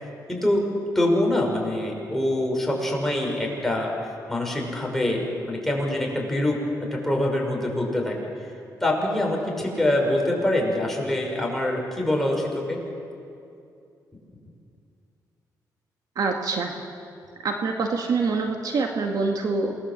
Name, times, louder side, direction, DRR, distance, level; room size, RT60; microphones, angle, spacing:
voice 1, 0.3-0.6 0.9-3.9 4.3-6.6 6.9-8.1 8.8-12.8, left 1 dB, 5° left, -1 dB, 6.2 m, -24 dB
voice 2, 16.2-16.8 17.4-19.8, right 4 dB, 60° right, 2 dB, 2.1 m, -25 dB
27.5 x 20.5 x 7.7 m, 2.6 s
cardioid pair, 100°, 7 cm